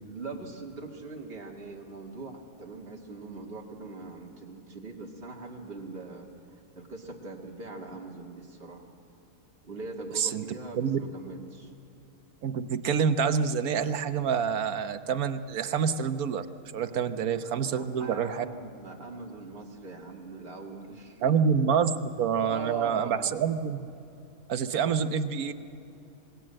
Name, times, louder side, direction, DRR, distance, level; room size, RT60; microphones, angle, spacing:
voice 1, 0.1-6.3 6.8-8.9 9.6-11.7 16.9-17.3 17.6-21.3 22.4-23.5 24.7-25.0, right 3 dB, 40° right, -1 dB, 2.5 m, -42 dB
voice 2, 12.4-16.5 16.7-18.4 21.2-23.9 24.5-25.5, right 7 dB, 80° right, 10 dB, 1.4 m, -27 dB
26.5 x 20.5 x 7.6 m, 2.8 s
omnidirectional pair, 1.5 m